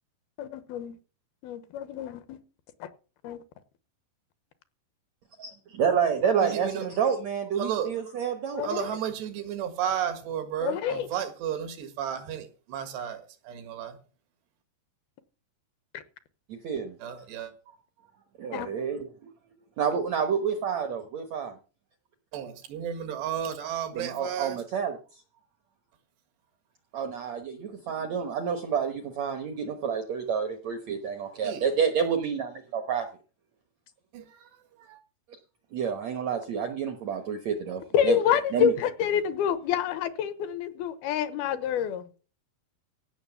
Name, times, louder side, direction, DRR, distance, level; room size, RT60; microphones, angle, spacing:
voice 1, 0.4-1.0 1.4-2.4 2.8-2.9 3.2-3.4 8.5-9.0 10.6-11.1 15.9-16.0 18.5-18.7 37.9-42.1, left 9 dB, 75° left, 2.7 m, -28 dB
voice 2, 5.4-8.6 16.5-17.0 18.4-19.3 19.8-21.5 23.9-25.0 26.9-33.1 35.7-38.2 38.5-38.7, right 7 dB, 70° right, 1.6 m, -29 dB
voice 3, 6.4-6.8 7.6-8.0 8.6-14.0 17.0-17.5 22.3-24.6 31.4-31.6 34.1-34.5 34.8-35.0, right 9 dB, 85° right, 3.9 m, -33 dB
16.5 x 6.3 x 7.1 m
omnidirectional pair, 4.7 m